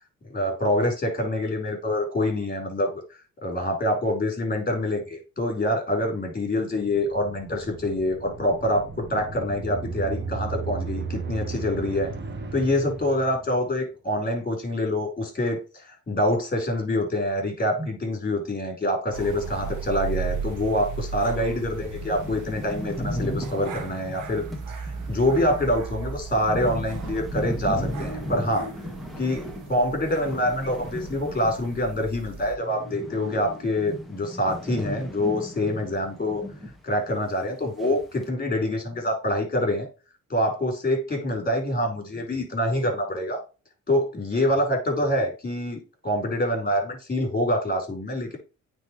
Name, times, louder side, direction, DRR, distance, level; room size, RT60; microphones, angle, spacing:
voice 1, 0.3-3.0 3.4-12.1 12.5-28.7 29.2-36.4 36.8-39.9 40.3-43.4 43.9-48.4, left 1 dB, 30° left, 3 dB, 4.4 m, -26 dB
sound 1, 6.7-13.7, right 4 dB, 35° right, 1.3 m, -35 dB
sound 2, 19.1-32.6, right 5 dB, 85° right, 1.4 m, -36 dB
sound 3, 21.1-21.2 21.6-21.7 21.8-32.1 32.3-36.8 37.1-37.2 37.8-38.2, equal, ahead, 2.1 m, -36 dB
9.3 x 4.3 x 3.1 m, 0.32 s
cardioid pair, 90°, 30 cm